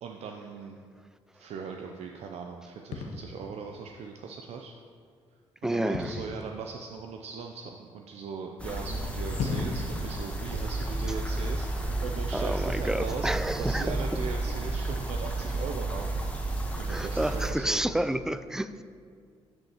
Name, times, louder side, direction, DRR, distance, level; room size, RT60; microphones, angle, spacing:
voice 1, 0.0-0.8 1.3-4.7 5.6-13.3 13.6-17.8, right 5 dB, 65° right, 2 dB, 0.5 m, -39 dB
sound 1, 2.9-3.2 5.9-6.5 7.4-7.5 8.9-9.0 9.3-10.0, left 4 dB, 85° left, 0.7 m, -33 dB
voice 2, 5.6-6.2 11.7-11.8 12.3-14.2 16.9-18.8, right 1 dB, 5° right, 12 dB, 0.3 m, -30 dB
sound 2, 8.6-17.5, right 2 dB, 10° left, 1.1 m, -32 dB
9.0 x 5.4 x 2.9 m, 2.1 s
supercardioid pair, 65°, 12 cm